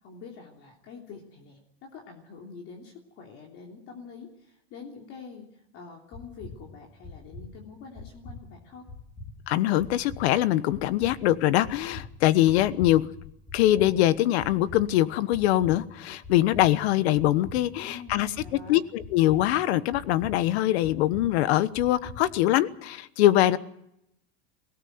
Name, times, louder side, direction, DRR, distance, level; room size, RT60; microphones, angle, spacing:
voice 1, 0.0-8.9 17.8-18.8, left 5 dB, 45° left, 0 dB, 3.2 m, -46 dB
sound 1, 6.1-22.5, left 2 dB, 5° left, 5.2 m, -46 dB
voice 2, 9.5-13.1 13.5-18.3 18.7-23.6, left 14 dB, 80° left, 15 dB, 1.2 m, -23 dB
23.5 x 18.0 x 7.9 m, 0.79 s
supercardioid pair, 155°, 32 cm